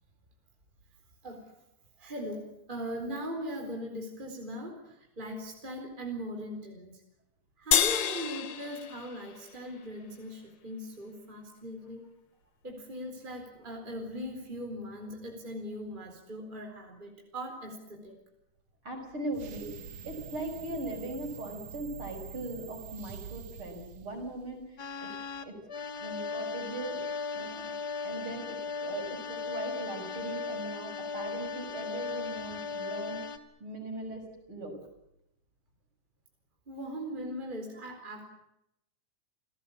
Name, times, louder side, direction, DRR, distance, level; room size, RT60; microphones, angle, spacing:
voice 1, 2.0-7.0 7.6-12.0 12.6-18.1 36.7-38.3, equal, 15° right, 2 dB, 4.2 m, -40 dB
sound 1, 7.7-10.3, left 9 dB, 60° left, 1.2 m, -30 dB
voice 2, 18.8-19.7 20.0-24.6 25.0-25.1 25.4-25.5 26.0-27.6 28.0-33.2 33.6-34.2 34.5-34.7, right 2 dB, 40° right, 3 dB, 6.6 m, -39 dB
sound 2, 19.3-24.8, right 6 dB, 55° right, 1.9 m, -45 dB
sound 3, 24.8-33.4, left 4 dB, 35° left, 1.9 m, -37 dB
30.0 x 18.0 x 8.6 m, 0.82 s
omnidirectional pair, 3.7 m